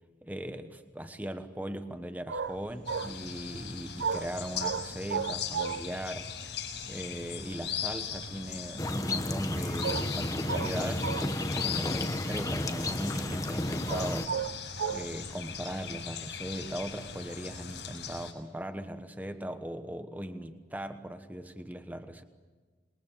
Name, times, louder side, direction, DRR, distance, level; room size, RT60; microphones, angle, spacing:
voice 1, 0.2-6.4 6.8-14.4 14.9-22.2, equal, 10° right, 8 dB, 1.2 m, -39 dB
sound 1, 2.3-6.1 6.4-6.5 6.7-7.7 7.9-8.8 9.3-9.5 9.8-11.8 12.2-12.9 13.3-15.3 16.6-17.3, right 6 dB, 85° right, 0.7 m, -35 dB
sound 2, 2.8-18.3, left 7 dB, 70° left, 6.1 m, -40 dB
sound 3, 8.8-14.3, left 1 dB, 20° left, 1.0 m, -32 dB
27.5 x 21.5 x 7.3 m, 1.4 s
head